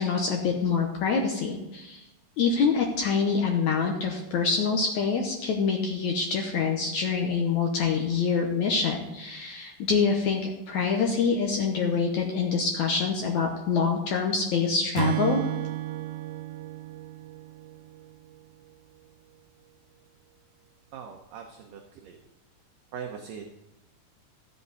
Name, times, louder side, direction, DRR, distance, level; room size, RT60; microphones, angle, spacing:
voice 1, 0.0-2.0 2.4-15.4, left 5 dB, 80° left, 2 dB, 1.6 m, -26 dB
Acoustic guitar / Strum, 15.0-18.4, right 15 dB, 90° right, 2.7 m, -33 dB
voice 2, 20.9-22.2 22.9-23.4, right 7 dB, 75° right, 3 dB, 2.1 m, -41 dB
15.0 x 7.8 x 4.1 m, 0.98 s
omnidirectional pair, 4.7 m